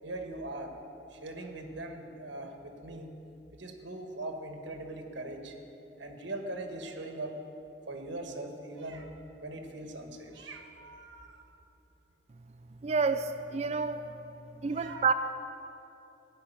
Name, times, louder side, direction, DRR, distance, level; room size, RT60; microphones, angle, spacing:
voice 1, 0.0-0.8 1.1-3.1 3.5-5.6 6.0-7.4 7.9-9.1 9.4-11.4 14.7-15.1, right 2 dB, 70° right, 4 dB, 1.3 m, -41 dB
voice 2, 12.8-14.0 14.6-15.1, right 5 dB, 35° right, 9 dB, 0.3 m, -29 dB
15.5 x 6.2 x 8.6 m, 3.0 s
head